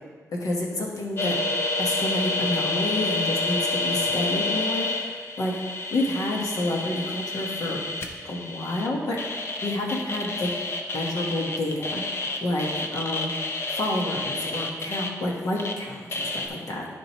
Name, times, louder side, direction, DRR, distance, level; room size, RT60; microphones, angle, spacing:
voice 1, 0.3-1.4 1.8-5.5 5.9-7.8 8.2-9.2 9.6-10.5 10.9-12.0 12.4-13.3 13.7-16.9, left 1 dB, 85° left, -2 dB, 1.5 m, -29 dB
sound 1, 1.2-15.7 16.1-16.5, left 2 dB, 45° left, 0.7 m, -29 dB
12.5 x 5.1 x 3.1 m, 1.5 s
wide cardioid pair, 165°, 6 cm